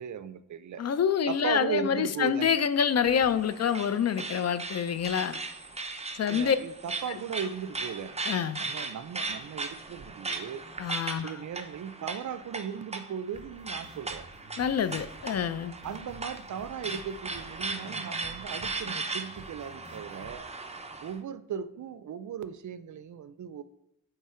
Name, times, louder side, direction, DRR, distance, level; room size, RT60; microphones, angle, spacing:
voice 1, 0.0-0.9 1.3-2.5 6.3-8.1 8.6-10.6 11.2-14.3 15.8-20.4 21.0-23.6, right 8 dB, 55° right, 13 dB, 0.5 m, -37 dB
voice 2, 0.8-5.4 6.1-6.6 8.3-8.6 10.8-11.3 14.6-15.7, left 7 dB, 45° left, 13 dB, 0.5 m, -27 dB
sound 1, 3.0-21.1, right 3 dB, 20° right, 0.7 m, -38 dB
sound 2, 13.3-20.3, right 1 dB, 10° left, 2.3 m, -51 dB
8.3 x 3.4 x 4.4 m, 0.87 s
cardioid pair, 75°, 36 cm